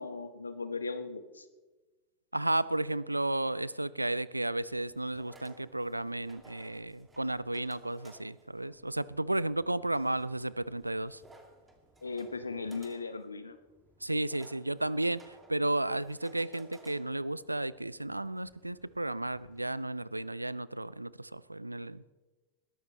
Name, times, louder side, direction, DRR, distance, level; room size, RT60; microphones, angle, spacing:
voice 1, 0.0-1.5 12.0-13.6, left 4 dB, 80° left, 11 dB, 1.1 m, -37 dB
voice 2, 2.3-11.2 14.0-22.1, right 1 dB, 85° right, 20 dB, 0.4 m, -33 dB
sound 1, 4.6-19.6, right 2 dB, 15° right, 2.4 m, -59 dB
21.0 x 12.0 x 3.2 m, 1.2 s
figure-of-eight pair, 90°, 0 cm